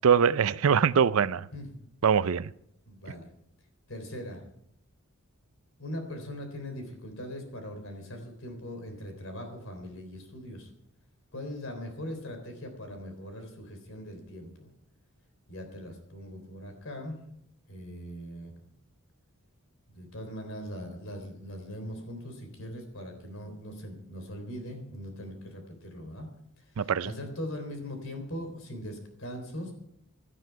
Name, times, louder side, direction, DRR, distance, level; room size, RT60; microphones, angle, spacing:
voice 1, 0.0-1.5 2.0-2.5 26.8-27.1, right 7 dB, 70° right, 0.5 m, -23 dB
voice 2, 1.5-1.8 2.9-3.3 3.9-4.4 5.8-10.7 11.3-14.7 15.5-17.2 17.7-18.7 19.9-26.3 26.6-29.7, equal, 65° left, 3.7 m, -40 dB
17.0 x 11.0 x 4.7 m
head